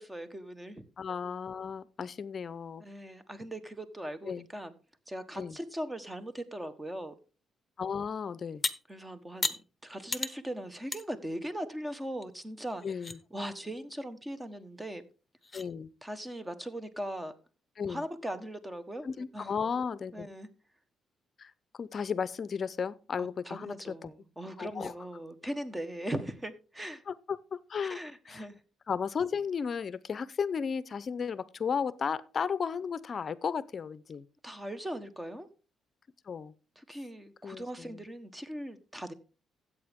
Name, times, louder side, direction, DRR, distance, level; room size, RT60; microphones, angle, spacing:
voice 1, 0.0-0.8 2.8-4.7 5.1-7.2 8.9-12.8 13.3-15.0 16.0-17.3 17.9-19.1 19.3-19.5 20.1-20.5 23.2-27.0 27.8-28.6 34.4-35.5 36.8-39.1, right 1 dB, 15° right, 1.4 m, -39 dB
voice 2, 1.0-2.8 4.2-4.5 5.3-5.6 7.8-8.6 12.8-13.2 15.5-15.9 17.8-18.0 19.0-20.3 21.4-23.7 24.0-24.1 24.6-24.9 27.1-28.0 28.3-28.5 28.9-34.2 36.3-36.5 37.4-38.0, left 6 dB, 45° left, 0.6 m, -34 dB
sound 1, 8.6-8.7 9.4-9.6 10.1-10.3 10.9-11.0 11.5-11.6 12.2-12.3 12.7-13.2 14.8-14.9 15.4-15.7, left 3 dB, 25° left, 0.9 m, -33 dB
13.5 x 8.3 x 3.6 m
cardioid pair, 90°, 0 cm